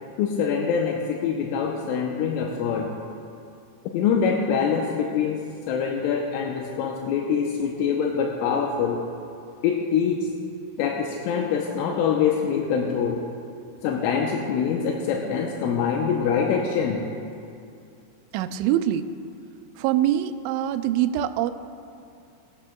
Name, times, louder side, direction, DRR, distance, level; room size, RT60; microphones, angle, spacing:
voice 1, 0.2-2.9 3.9-5.4 5.7-9.0 9.6-10.2 10.8-13.2 13.8-17.0, left 6 dB, 85° left, 0 dB, 3.1 m, -24 dB
voice 2, 18.3-19.0 19.8-21.5, right 12 dB, 85° right, 8 dB, 2.7 m, -24 dB
21.0 x 11.5 x 2.3 m, 2.5 s
omnidirectional pair, 5.8 m